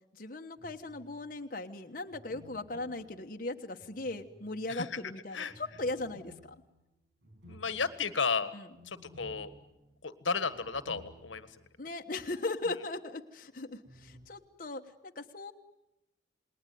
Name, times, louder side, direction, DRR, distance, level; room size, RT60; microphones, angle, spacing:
voice 1, 0.1-6.6 8.5-8.7 11.8-15.5, left 2 dB, 45° left, 4 dB, 1.2 m, -38 dB
sound 1, 0.6-1.3 2.1-4.8 5.5-11.7 12.0-12.1 13.9-14.3, equal, 60° right, 6.4 m, -56 dB
voice 2, 4.7-5.0 5.3-5.5 7.5-8.5 8.8-9.5 10.0-11.6, left 5 dB, 90° left, 12 dB, 1.6 m, -33 dB
28.5 x 20.5 x 9.4 m, 0.93 s
head